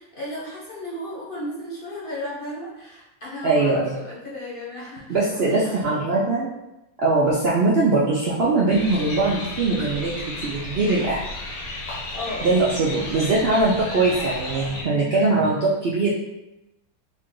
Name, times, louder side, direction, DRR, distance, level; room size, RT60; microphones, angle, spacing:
voice 1, 0.0-5.9 12.1-12.5 12.9-13.9, left 1 dB, 40° left, -7 dB, 1.0 m, -35 dB
voice 2, 3.4-3.9 5.1-6.5 7.0-10.1 10.4-11.2 12.4-16.1, right 3 dB, 55° right, -6 dB, 0.7 m, -21 dB
sound 1, 8.7-14.8, left 2 dB, 65° left, 1.1 m, -34 dB
3.7 x 2.4 x 3.7 m, 0.92 s
omnidirectional pair, 1.6 m